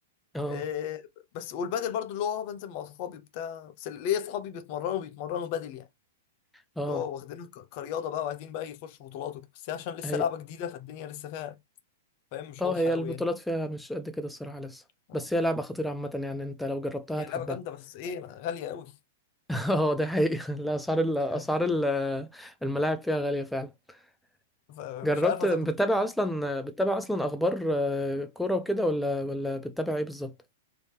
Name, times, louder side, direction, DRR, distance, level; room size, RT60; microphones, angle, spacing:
voice 1, 0.5-5.9 6.8-11.6 12.3-13.2 15.1-15.2 17.1-18.9 21.3-21.4 24.7-26.0, left 9 dB, 50° left, 0.7 m, -34 dB
voice 2, 12.6-14.8 15.1-17.6 19.5-23.7 25.0-30.3, equal, 5° left, 0.5 m, -29 dB
3.1 x 2.7 x 3.4 m
hypercardioid pair, 110°, 0 cm